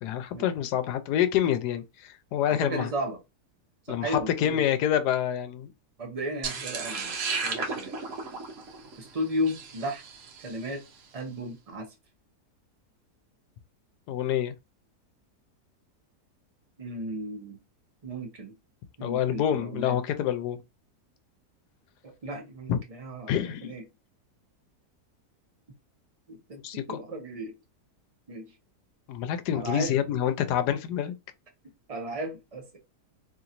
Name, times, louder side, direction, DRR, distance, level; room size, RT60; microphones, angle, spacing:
voice 1, 0.0-2.9 3.9-5.7 14.1-14.5 19.0-20.6 22.7-22.8 23.3-23.7 26.6-27.0 29.1-31.1, left 10 dB, 85° left, 1.1 m, -27 dB
voice 2, 2.5-3.2 3.9-4.6 6.0-7.2 7.4-7.9 9.0-10.0 10.4-10.8 11.1-11.9 16.8-17.6 18.0-18.5 19.0-20.0 22.2-23.8 26.3-26.6 26.9-27.5 28.3-28.5 29.5-30.0 31.9-32.8, equal, 30° right, 0.7 m, -34 dB
sound 1, 6.4-10.7, right 4 dB, 55° right, 1.1 m, -34 dB
3.0 x 2.9 x 2.5 m
omnidirectional pair, 1.7 m